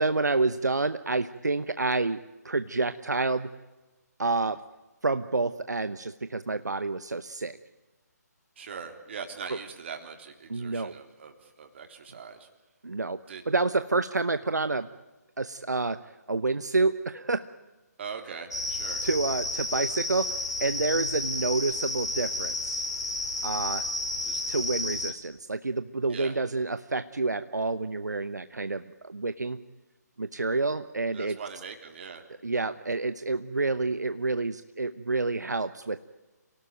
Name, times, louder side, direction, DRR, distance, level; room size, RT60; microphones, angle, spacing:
voice 1, 0.0-2.2 2.4-3.5 4.2-4.6 5.0-7.6 10.5-10.9 12.8-13.2 13.5-14.9 15.4-16.0 16.3-17.4 19.0-20.3 20.6-22.8 23.4-23.9 24.5-29.6 30.2-31.4 32.4-36.0, right 3 dB, 75° right, 12 dB, 1.0 m, -28 dB
voice 2, 8.6-12.5 13.3-13.4 18.0-19.0 24.2-24.4 26.1-26.3 31.1-32.2, right 6 dB, 40° right, 4 dB, 3.6 m, -41 dB
sound 1, 18.5-25.1, left 2 dB, 75° left, 4.4 m, -31 dB
28.0 x 18.0 x 9.1 m, 1.1 s
figure-of-eight pair, 145°, 9 cm